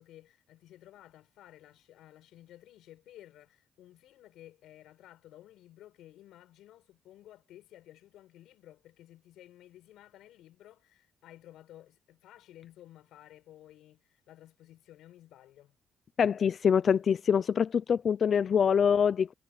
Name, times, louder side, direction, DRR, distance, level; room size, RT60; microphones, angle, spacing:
voice 1, 0.0-15.8, left 13 dB, 85° left, 5.8 m, -54 dB
voice 2, 16.2-19.3, left 7 dB, 50° left, 0.6 m, -25 dB
cardioid pair, 90°, 0 cm